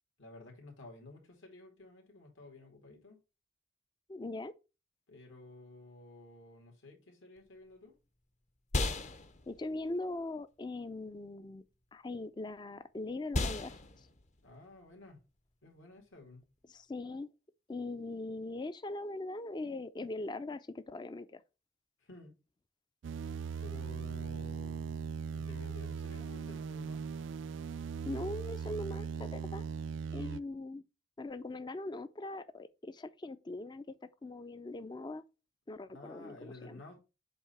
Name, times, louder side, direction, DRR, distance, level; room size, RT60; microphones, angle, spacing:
voice 1, 0.2-3.2 5.1-8.0 14.4-15.2 15.6-16.5 22.0-22.3 23.6-25.1 25.3-27.0 35.9-37.0, left 2 dB, 70° left, 2.5 m, -53 dB
voice 2, 4.1-4.5 9.5-11.6 11.9-14.1 16.7-17.3 17.7-21.4 28.1-29.7 30.1-30.8 31.2-33.8 34.2-35.2 35.7-36.8, left 2 dB, 20° left, 0.4 m, -41 dB
sound 1, 7.4-17.0, left 2 dB, 35° left, 0.8 m, -40 dB
sound 2, 23.0-30.4, right 6 dB, 65° right, 0.3 m, -39 dB
7.8 x 2.8 x 5.6 m
head